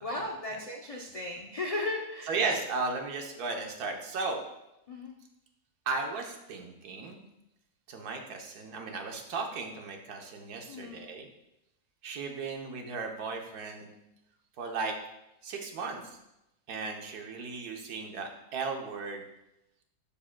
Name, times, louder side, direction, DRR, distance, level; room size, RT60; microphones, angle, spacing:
voice 1, 0.0-2.4 4.9-5.2 10.7-11.0, left 2 dB, 75° left, 0 dB, 0.3 m, -36 dB
voice 2, 2.3-4.4 5.9-7.3 7.9-11.3 12.0-13.9 14.6-15.0 15.4-16.2 16.7-19.2, right 4 dB, 80° right, 3 dB, 1.4 m, -35 dB
12.0 x 4.8 x 2.2 m, 0.89 s
omnidirectional pair, 1.6 m